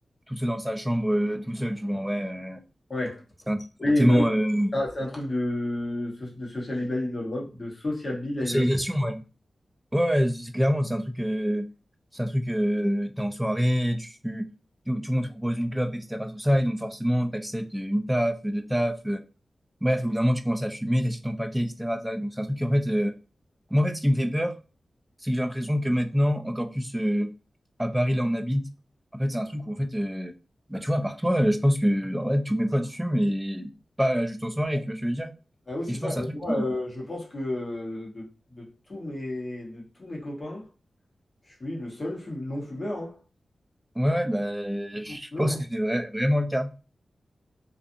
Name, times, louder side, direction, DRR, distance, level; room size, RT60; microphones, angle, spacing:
voice 1, 0.3-2.6 3.5-3.6 4.0-4.7 8.4-9.2 9.9-11.7 12.1-14.5 14.9-19.2 19.8-23.2 23.7-24.5 25.2-27.3 27.8-28.7 29.1-30.3 30.7-33.7 34.0-35.3 35.9-36.6 44.0-46.7, equal, 5° right, 0.3 m, -26 dB
voice 2, 2.9-3.2 3.8-4.2 4.7-8.6 34.7-34.8 35.7-40.7 41.6-43.2 45.1-45.6, left 1 dB, 30° left, 0.9 m, -31 dB
2.6 x 2.4 x 2.5 m
wide cardioid pair, 135°, 0 cm